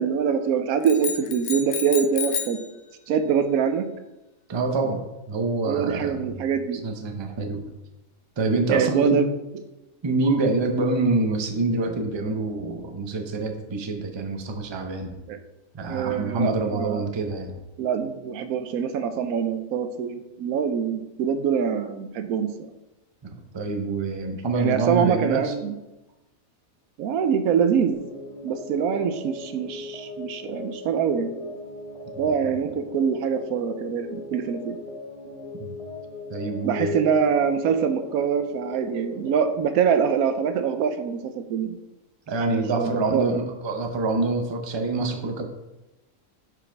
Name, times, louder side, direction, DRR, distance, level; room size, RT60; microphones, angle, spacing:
voice 1, 0.0-2.6 3.1-3.9 5.7-6.8 8.7-9.2 15.3-15.4 15.9-17.0 17.8-22.7 24.5-25.7 27.0-28.0 28.4-31.3 32.2-34.8 36.6-41.8 42.5-43.5, right 7 dB, 90° right, 9 dB, 1.1 m, -24 dB
sound 1, 0.8-2.7, left 7 dB, 60° left, 0.7 m, -30 dB
voice 2, 4.5-6.5 6.8-7.7 8.4-9.2 10.0-15.2 15.7-17.6 23.5-25.5 32.2-32.3 35.5-35.8 36.3-37.0 42.3-45.5, right 3 dB, 30° right, 4 dB, 0.5 m, -26 dB
sound 2, 27.9-39.6, left 2 dB, 25° left, 1.1 m, -39 dB
7.1 x 5.1 x 3.4 m, 1.0 s
omnidirectional pair, 1.5 m